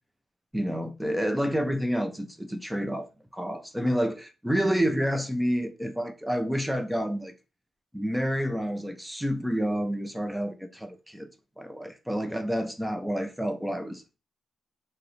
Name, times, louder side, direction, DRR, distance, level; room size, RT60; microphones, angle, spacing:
voice 1, 0.5-7.3 7.9-11.3 11.6-14.0, equal, 5° right, 0.6 m, -29 dB
3.2 x 2.9 x 3.9 m
cardioid pair, 135°, 0 cm